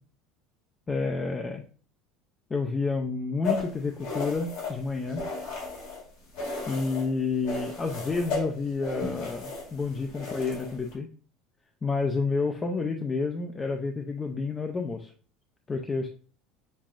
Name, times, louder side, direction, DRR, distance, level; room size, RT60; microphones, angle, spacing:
voice 1, 0.9-1.7 2.5-5.2 6.7-11.1 11.8-15.1 15.7-16.1, left 4 dB, 20° left, 4 dB, 0.4 m, -29 dB
sound 1, 3.4-6.0 6.3-7.1 7.4-10.9, left 3 dB, 85° left, 2.2 m, -35 dB
7.2 x 2.4 x 2.5 m, 0.41 s
supercardioid pair, 130°, 0 cm